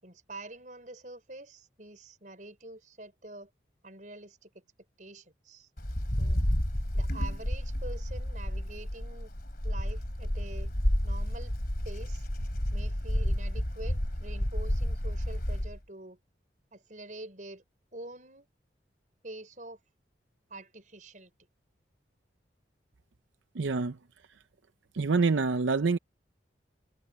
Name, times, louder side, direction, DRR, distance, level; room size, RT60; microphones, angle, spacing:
voice 1, 0.0-3.5 3.8-4.5 5.0-5.7 6.2-6.4 6.9-9.3 9.6-10.7 11.0-11.5 11.8-12.2 12.7-16.2 16.7-17.6 17.9-18.5 19.2-19.8 20.5-21.3, right 2 dB, 45° right, 5.9 m, -46 dB
Wind, 5.8-15.8, equal, 50° left, 3.1 m, -31 dB
voice 2, 23.6-24.0 24.9-26.0, right 4 dB, 85° right, 0.6 m, -26 dB
head